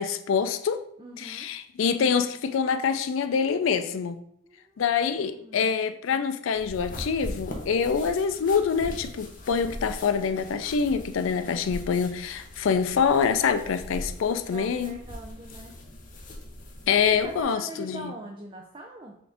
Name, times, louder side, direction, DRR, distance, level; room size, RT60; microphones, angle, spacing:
voice 1, 0.0-0.8 1.2-4.2 4.8-15.0 16.9-18.1, left 6 dB, 75° left, 9 dB, 0.4 m, -25 dB
voice 2, 1.0-1.5 4.4-4.8 5.3-5.8 14.5-15.8 17.1-19.2, right 2 dB, 25° right, 1 dB, 0.4 m, -42 dB
sound 1, 6.5-17.4, left 1 dB, 40° left, 0.7 m, -41 dB
6.0 x 2.5 x 3.4 m, 0.69 s
head